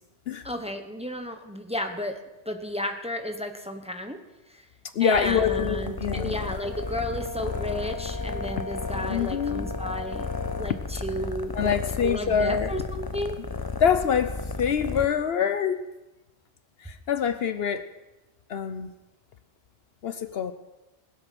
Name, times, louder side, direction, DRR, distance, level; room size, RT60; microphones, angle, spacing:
voice 1, 0.4-2.2 2.4-4.2 4.5-4.6 5.0-10.3 10.6-11.8 12.0-13.4, left 1 dB, 5° right, 5 dB, 1.1 m, -33 dB
voice 2, 4.9-6.3 9.1-9.7 11.5-12.7 13.8-15.8 16.8-17.9 18.5-18.9 20.0-20.5, left 7 dB, 65° left, 11 dB, 0.9 m, -25 dB
sound 1, 5.1-15.1, left 4 dB, 25° left, 0.6 m, -33 dB
Brass instrument, 6.6-10.7, left 3 dB, 50° right, 2.1 m, -38 dB
21.0 x 8.0 x 6.0 m, 1.0 s
omnidirectional pair, 1.2 m